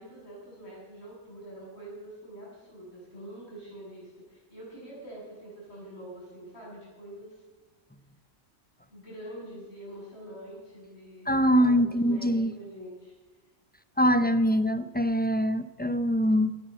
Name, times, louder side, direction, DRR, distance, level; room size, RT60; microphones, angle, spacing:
voice 1, 0.0-7.4 8.9-13.1, right 1 dB, 60° left, -5 dB, 7.9 m, -45 dB
voice 2, 11.3-12.5 14.0-16.6, equal, 15° left, 11 dB, 0.4 m, -23 dB
18.0 x 10.5 x 7.5 m, 1.2 s
omnidirectional pair, 1.3 m